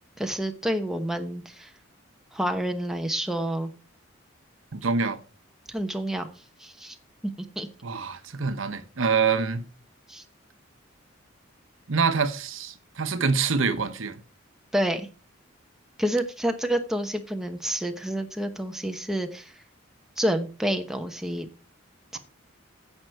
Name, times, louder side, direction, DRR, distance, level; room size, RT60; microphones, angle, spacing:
voice 1, 0.2-1.7 2.3-3.7 5.7-7.0 7.2-7.7 10.1-10.2 14.7-15.1 16.0-19.6 20.2-21.5 22.1-22.2, right 1 dB, ahead, 1.0 m, -29 dB
voice 2, 4.7-5.2 7.8-9.6 11.9-14.2, right 5 dB, 70° right, 1.0 m, -25 dB
15.5 x 5.2 x 4.5 m
head